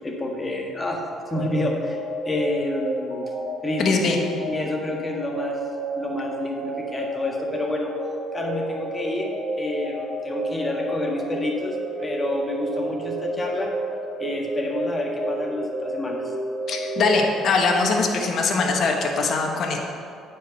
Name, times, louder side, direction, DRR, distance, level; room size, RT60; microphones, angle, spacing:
voice 1, 0.0-3.3 3.6-3.8 4.5-5.6 6.0-7.9 8.3-9.3 9.6-13.7 14.2-16.3, left 1 dB, 20° left, 0 dB, 1.6 m, -28 dB
sound 1, 1.2-17.8, right 1 dB, 80° right, 2.1 m, -31 dB
voice 2, 3.8-4.2 16.7-19.8, left 4 dB, 55° left, 1 dB, 1.3 m, -22 dB
9.0 x 5.0 x 6.5 m, 2.5 s
cardioid pair, 90°, 0 cm